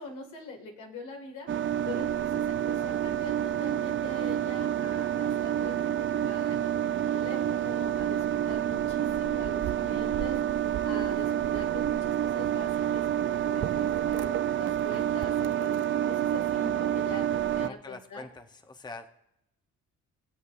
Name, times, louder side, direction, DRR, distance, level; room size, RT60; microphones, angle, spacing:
voice 1, 0.0-1.5 1.8-10.4 10.8-18.2, left 2 dB, 80° left, 2 dB, 2.1 m, -44 dB
sound 1, 1.5-17.7, right 10 dB, 40° right, 0.4 m, -28 dB
voice 2, 17.5-19.1, left 3 dB, 15° left, 6 dB, 0.8 m, -44 dB
22.0 x 7.9 x 2.5 m, 0.83 s
cardioid pair, 90°, 30 cm